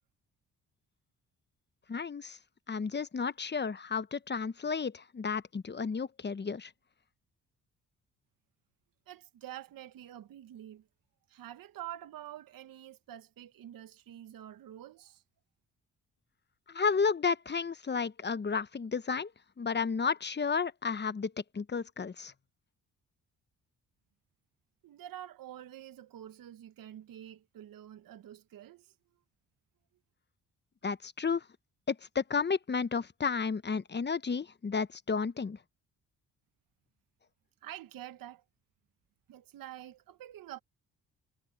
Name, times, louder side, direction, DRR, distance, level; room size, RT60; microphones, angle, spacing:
voice 1, 1.9-2.4 2.7-6.7 16.7-19.3 19.6-22.3 30.8-31.4 31.9-35.6, left 5 dB, 30° left, 1.0 m, -32 dB
voice 2, 9.1-10.9 11.3-15.2 24.8-28.9 37.6-38.4 39.3-40.6, right 12 dB, 70° right, 1.2 m, -47 dB
supercardioid pair, 60°, 35 cm